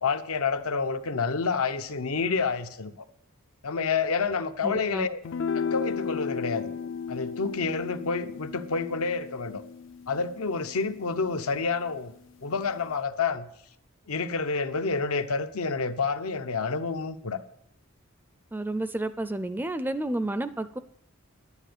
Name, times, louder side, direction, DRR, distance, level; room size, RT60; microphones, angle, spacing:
voice 1, 0.0-3.0 3.6-5.2 5.5-6.7 7.1-9.6 10.1-12.1 12.4-13.5 14.1-17.4, left 4 dB, 85° left, 0.9 m, -28 dB
voice 2, 4.6-5.1 18.5-20.8, right 1 dB, 10° right, 0.4 m, -31 dB
sound 1, 5.2-11.8, left 6 dB, 60° left, 0.4 m, -35 dB
10.5 x 9.9 x 6.8 m
head